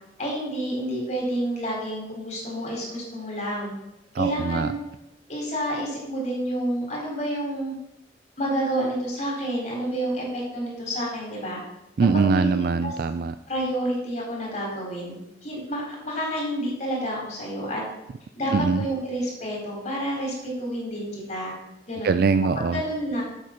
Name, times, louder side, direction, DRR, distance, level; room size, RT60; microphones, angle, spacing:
voice 1, 0.2-3.7 4.2-4.8 5.3-7.7 8.4-11.6 12.1-12.9 13.5-15.2 15.4-17.8 18.4-21.5 21.9-22.1 22.7-23.2, right 1 dB, 40° left, -3 dB, 3.8 m, -29 dB
voice 2, 4.1-4.7 12.0-13.3 18.5-18.8 22.0-22.8, right 4 dB, 55° right, 11 dB, 0.3 m, -22 dB
8.1 x 7.7 x 5.8 m, 0.88 s
head